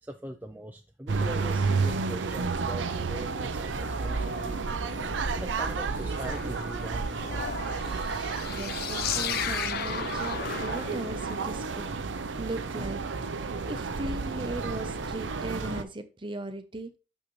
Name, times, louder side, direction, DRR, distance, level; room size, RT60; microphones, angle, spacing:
voice 1, 0.0-4.8 5.3-7.5, right 1 dB, 10° right, 4 dB, 0.4 m, -41 dB
sound 1, 1.1-15.8, right 4 dB, 90° right, 0.6 m, -31 dB
sound 2, 3.6-11.8 13.9-14.0, left 9 dB, 55° left, 0.4 m, -37 dB
voice 2, 8.4-11.9 12.3-17.0, right 2 dB, 30° right, 9 dB, 0.8 m, -38 dB
6.5 x 5.9 x 3.1 m, 0.31 s
head